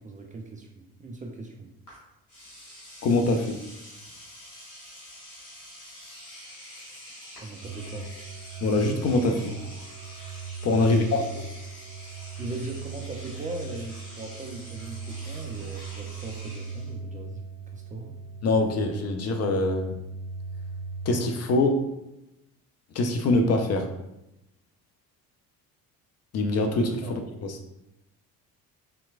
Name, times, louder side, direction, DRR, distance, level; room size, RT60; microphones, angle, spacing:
voice 1, 0.0-1.7 7.4-8.1 10.8-11.2 12.4-17.4 17.7-18.1 27.0-27.1, right 2 dB, 20° right, 1 dB, 0.4 m, -39 dB
Engine / Domestic sounds home sounds, 1.9-2.0 2.3-16.9, equal, 90° left, 1.1 m, -46 dB
voice 2, 3.0-3.6 8.6-9.6 10.6-11.0 18.4-20.0 21.1-21.8 22.9-23.9 26.3-27.6, left 2 dB, 35° left, 4 dB, 0.5 m, -24 dB
sound 1, 7.6-21.2, right 5 dB, 80° right, 0.5 m, -39 dB
3.5 x 2.9 x 2.4 m, 0.90 s
figure-of-eight pair, 50°, 43 cm